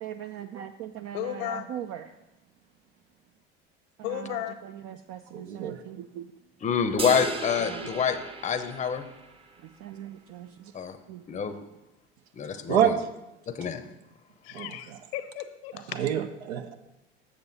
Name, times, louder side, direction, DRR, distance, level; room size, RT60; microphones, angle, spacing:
voice 1, 0.0-2.1 4.0-6.3 7.1-7.2 7.7-7.9 9.6-10.7 11.1-11.2, right 9 dB, 50° right, 8 dB, 0.4 m, -40 dB
voice 2, 1.1-1.7 4.0-4.6 14.4-16.0, left 12 dB, 70° left, 10 dB, 0.9 m, -35 dB
voice 3, 5.3-5.8 12.7-12.9 14.5-14.7 16.0-16.8, right 9 dB, 80° right, 9 dB, 0.7 m, -26 dB
voice 4, 6.6-8.2 8.4-9.0 10.7-11.0 11.3-11.5 12.4-12.9 13.5-13.8, left 7 dB, 25° left, 9 dB, 0.6 m, -27 dB
sound 1, 7.0-9.5, right 3 dB, 20° right, 0.7 m, -36 dB
7.6 x 6.8 x 4.0 m, 0.94 s
hypercardioid pair, 85°, 31 cm